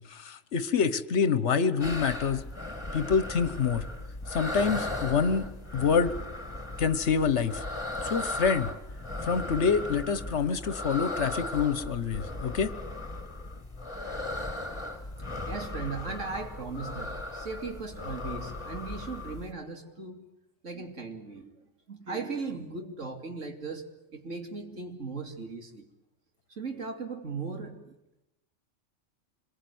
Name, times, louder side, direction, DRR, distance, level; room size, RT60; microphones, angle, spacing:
voice 1, 0.0-2.4 2.9-3.9 4.3-5.5 5.7-6.1 6.8-7.6 8.0-8.7 9.2-12.7, left 6 dB, 60° left, 14 dB, 1.5 m, -26 dB
sound 1, 1.8-19.5, left 2 dB, 20° left, 2.4 m, -37 dB
voice 2, 15.5-20.3 20.6-21.6 21.9-25.9 26.6-27.9, right 4 dB, 70° right, 5 dB, 3.2 m, -38 dB
27.0 x 22.5 x 9.5 m, 0.89 s
omnidirectional pair, 1.3 m